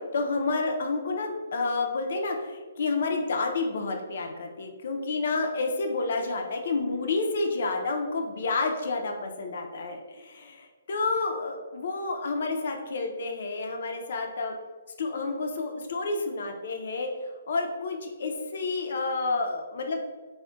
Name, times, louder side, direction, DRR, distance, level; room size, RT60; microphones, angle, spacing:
voice 1, 0.0-14.5 15.0-20.0, left 3 dB, 55° left, 3 dB, 0.4 m, -30 dB
2.3 x 2.0 x 3.7 m, 1.3 s
hypercardioid pair, 165°, 0 cm